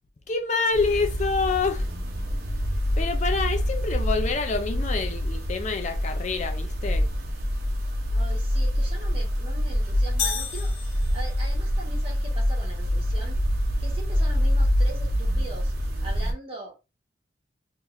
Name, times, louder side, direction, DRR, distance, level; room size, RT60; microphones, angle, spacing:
voice 1, 0.3-1.9 3.0-7.1, left 4 dB, 40° left, 0.4 m, -27 dB
sound 1, 0.7-16.3, equal, 55° right, 0.9 m, -26 dB
voice 2, 8.1-13.4 13.8-15.7 16.0-17.0, right 1 dB, 30° right, 1.4 m, -41 dB
sound 2, 10.2-11.6, left 6 dB, 65° left, 1.2 m, -32 dB
3.7 x 2.9 x 2.5 m
head